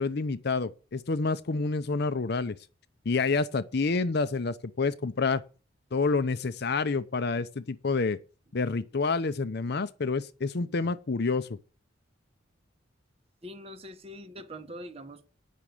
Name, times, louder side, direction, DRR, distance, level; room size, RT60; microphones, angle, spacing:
voice 1, 0.0-2.6 3.1-5.4 5.9-8.2 8.5-11.5, left 4 dB, 55° left, 0.6 m, -28 dB
voice 2, 13.4-15.3, equal, 30° right, 1.3 m, -44 dB
9.4 x 6.1 x 8.5 m
head